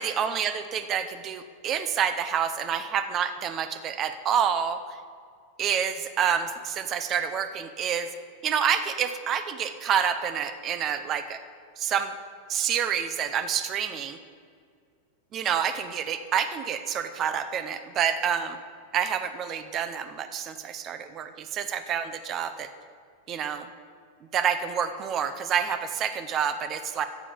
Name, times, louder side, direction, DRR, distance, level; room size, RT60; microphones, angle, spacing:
voice 1, 0.0-4.8 5.6-8.1 8.4-11.4 11.8-12.1 12.5-14.2 15.3-18.6 18.9-22.7 23.3-23.7 24.3-27.0, right 8 dB, 25° right, 10 dB, 0.7 m, -28 dB
14.0 x 7.7 x 5.0 m, 2.2 s
supercardioid pair, 165°, 0 cm